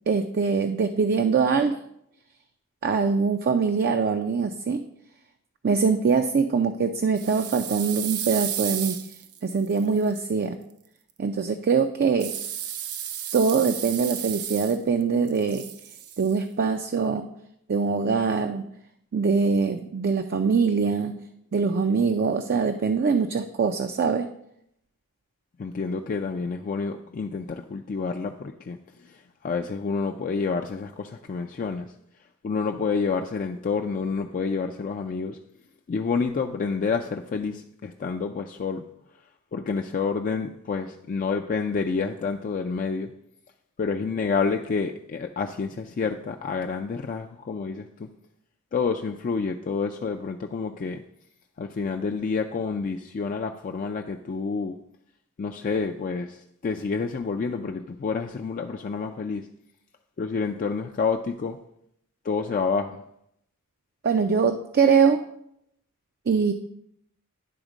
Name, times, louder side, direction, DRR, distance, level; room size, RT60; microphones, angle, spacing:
voice 1, 0.1-1.8 2.8-4.8 5.6-9.0 9.4-10.6 11.2-12.3 13.3-15.7 16.2-17.3 17.7-18.7 19.1-21.1 21.5-24.3 64.0-65.2 66.3-66.5, right 5 dB, 45° right, 7 dB, 0.4 m, -23 dB
sound 1, 7.2-10.2 12.2-15.0 15.3-16.3, right 9 dB, 90° right, 0.6 m, -33 dB
voice 2, 25.6-31.9 32.4-35.4 35.9-38.9 39.5-43.1 43.8-48.1 48.7-51.0 51.6-54.8 55.4-59.5 60.2-61.6 62.2-63.0, left 5 dB, 40° left, 3 dB, 0.3 m, -29 dB
10.0 x 3.6 x 5.0 m, 0.74 s
head